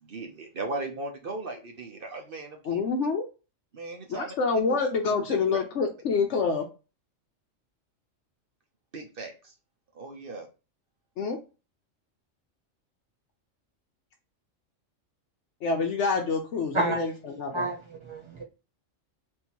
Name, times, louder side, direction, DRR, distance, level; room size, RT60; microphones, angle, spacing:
voice 1, 0.0-2.9 3.7-4.3 4.7-5.6 8.9-9.5 9.9-10.5, right 3 dB, 50° right, 0.9 m, -38 dB
voice 2, 2.7-3.2 4.1-6.7 11.2-11.4 15.6-17.1 17.4-17.6, left 4 dB, 65° left, 0.9 m, -26 dB
voice 3, 16.7-17.1 17.5-18.4, right 2 dB, 25° right, 1.1 m, -30 dB
3.6 x 2.7 x 4.4 m
omnidirectional pair, 1.4 m